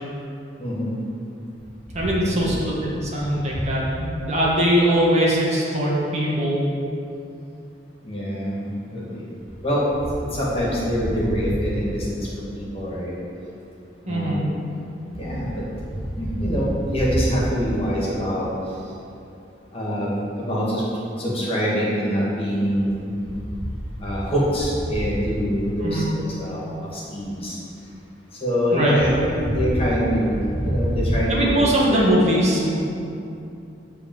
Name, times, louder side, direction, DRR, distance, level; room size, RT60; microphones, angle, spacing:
voice 1, 0.6-0.9 2.2-2.4 8.0-9.2 9.6-9.8 10.2-13.2 14.0-14.6 15.2-15.6 16.2-18.4 19.7-20.8 21.2-23.1 24.0-26.0 26.4-26.6 26.9-27.6 28.4-31.6 31.9-32.1, equal, 35° left, -6 dB, 2.2 m, -24 dB
voice 2, 1.9-6.6 14.1-14.5 25.8-26.1 28.7-29.0 31.3-32.7, equal, 40° right, -5 dB, 1.6 m, -21 dB
8.6 x 4.3 x 7.3 m, 2.7 s
head